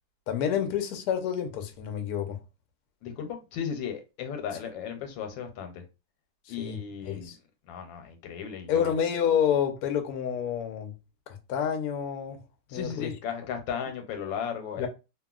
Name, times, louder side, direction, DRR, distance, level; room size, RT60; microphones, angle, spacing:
voice 1, 0.3-2.4 6.6-7.4 8.7-10.9 11.3-12.4 12.7-13.1 14.8-14.9, left 8 dB, 70° left, 0.9 m, -28 dB
voice 2, 3.0-5.8 6.5-7.3 7.7-9.0 12.7-14.9, left 7 dB, 90° left, 1.4 m, -35 dB
2.8 x 2.6 x 2.3 m
omnidirectional pair, 2.0 m